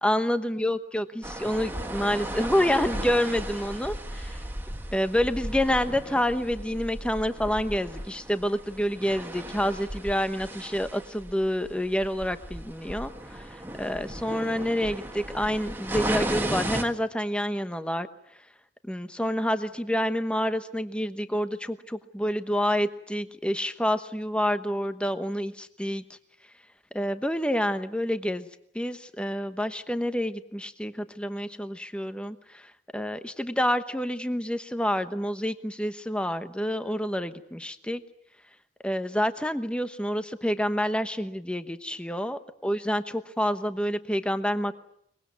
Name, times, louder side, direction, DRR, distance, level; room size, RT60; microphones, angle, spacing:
voice 1, 0.0-4.4 4.9-18.1 18.8-26.0 26.9-28.5 28.7-38.0 38.8-44.7, equal, 5° left, 10 dB, 1.0 m, -28 dB
sound 1, 1.2-16.8, right 1 dB, 10° right, 1.8 m, -35 dB
23.5 x 22.0 x 9.4 m, 0.74 s
head